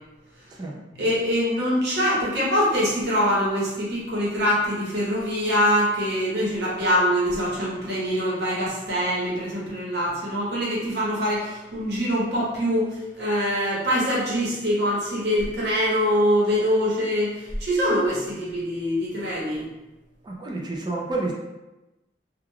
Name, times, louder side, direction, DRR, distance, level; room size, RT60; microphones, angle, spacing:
voice 1, 1.0-19.6, equal, 70° right, -6 dB, 1.0 m, -24 dB
voice 2, 20.2-21.3, right 2 dB, 25° right, -1 dB, 0.3 m, -29 dB
3.1 x 2.3 x 2.2 m, 1.0 s
head